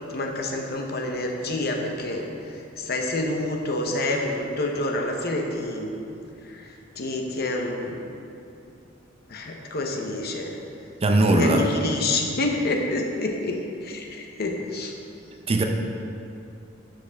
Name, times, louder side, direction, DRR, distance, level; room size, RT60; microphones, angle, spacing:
voice 1, 0.1-6.0 6.4-8.1 9.3-10.6 11.4-14.9, left 2 dB, 55° left, 2 dB, 0.9 m, -28 dB
voice 2, 11.0-11.7 15.5-15.6, right 2 dB, 30° right, 3 dB, 0.6 m, -19 dB
11.5 x 5.2 x 3.5 m, 2.6 s
head